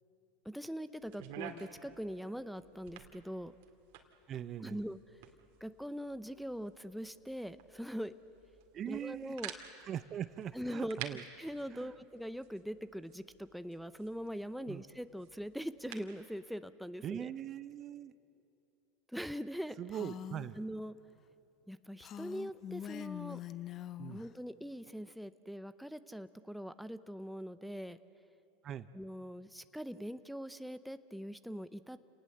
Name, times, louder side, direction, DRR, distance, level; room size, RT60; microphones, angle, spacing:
voice 1, 0.4-3.5 4.6-5.0 5.6-8.1 8.8-9.5 10.5-11.0 11.4-17.3 19.1-20.0 20.6-20.9 21.7-23.4 24.1-28.0 28.9-32.0, equal, ahead, 11 dB, 0.7 m, -42 dB
sound 1, 1.0-16.2, right 9 dB, 65° right, 2.2 m, -52 dB
voice 2, 4.3-4.8 8.7-9.4 9.8-11.2 11.7-11.9 14.7-14.8 17.0-18.1 19.8-20.6 24.0-24.2 28.6-28.9, right 10 dB, 40° right, 14 dB, 0.7 m, -41 dB
Female speech woman speaking, 19.9-20.5 22.0-24.3, left 10 dB, 40° left, 0.6 m, -44 dB
28.5 x 19.0 x 7.8 m, 2.7 s
hypercardioid pair, 95°, 0 cm